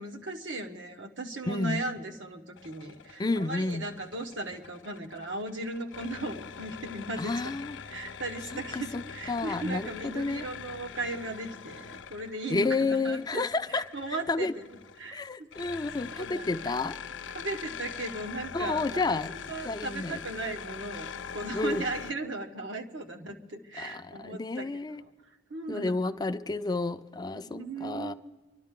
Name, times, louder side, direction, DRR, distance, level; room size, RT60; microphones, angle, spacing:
voice 1, 0.0-7.5 7.9-13.4 13.7-14.7 15.0-15.8 16.1-16.7 17.3-24.8 25.5-26.1 27.5-28.1, right 2 dB, 75° right, 3 dB, 1.3 m, -37 dB
voice 2, 1.5-1.9 3.2-3.9 7.2-7.8 8.5-9.0 9.3-10.5 12.5-13.9 14.3-14.5 15.1-17.0 18.5-19.3 19.6-20.2 21.5-21.8 23.8-25.0 25.7-28.1, left 3 dB, 20° left, 9 dB, 0.5 m, -30 dB
sound 1, 2.6-22.1, left 7 dB, 70° left, 0.5 m, -43 dB
26.0 x 12.0 x 3.7 m, 1.3 s
head